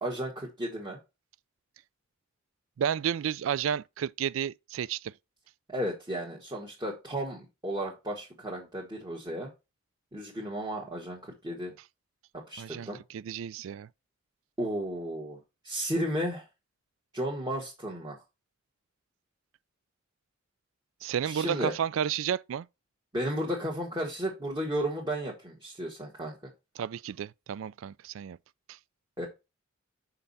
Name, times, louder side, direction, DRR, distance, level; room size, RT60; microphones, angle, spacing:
voice 1, 0.0-1.0 5.7-9.5 10.1-11.7 12.5-13.0 14.6-15.4 15.6-16.4 17.1-18.2 21.2-21.7 23.1-26.4 29.2-29.3, equal, 20° right, 1.5 m, -33 dB
voice 2, 2.8-5.1 12.6-13.9 21.0-22.7 26.8-28.4 28.7-28.8, right 8 dB, 75° right, 0.3 m, -32 dB
5.7 x 5.3 x 4.0 m
head